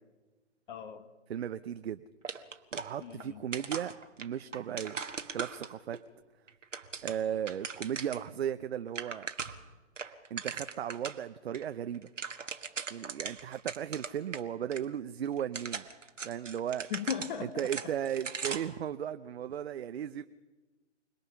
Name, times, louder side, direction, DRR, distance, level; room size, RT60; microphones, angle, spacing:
voice 1, 0.7-1.1 3.0-3.4 16.9-17.7, left 8 dB, 40° left, 11 dB, 1.3 m, -37 dB
voice 2, 1.3-2.0 2.7-3.9 4.2-5.0 5.3-6.0 7.0-9.3 10.3-12.1 12.9-15.9 16.2-16.9 17.6-20.3, right 9 dB, 60° right, 10 dB, 0.7 m, -36 dB
sound 1, 2.2-3.3 3.5-6.0 6.5-8.3 8.6-8.7 8.9-9.7 10.0-11.2 11.5-11.6 11.9-14.4 14.7-14.8 15.4-18.8, right 5 dB, 85° right, 1.6 m, -39 dB
26.0 x 20.0 x 5.7 m, 1.2 s
figure-of-eight pair, 135°, 36 cm